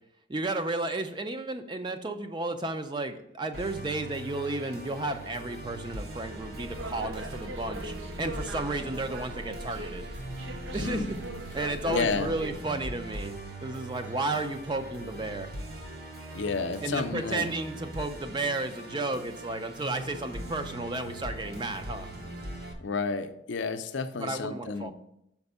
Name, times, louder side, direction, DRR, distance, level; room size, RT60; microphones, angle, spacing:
voice 1, 0.3-10.1 10.7-11.2 11.5-13.4 13.6-15.5 16.8-22.1 24.1-24.9, right 2 dB, 25° right, 8 dB, 0.4 m, -33 dB
Musical instrument, 3.5-22.7, right 1 dB, 50° right, 1.0 m, -41 dB
sound 1, 6.4-12.5, right 2 dB, 85° right, 0.6 m, -39 dB
voice 2, 10.8-11.2 11.9-12.3 16.3-17.5 22.8-24.9, left 4 dB, 75° left, 9 dB, 0.5 m, -31 dB
5.9 x 4.3 x 5.4 m, 0.78 s
head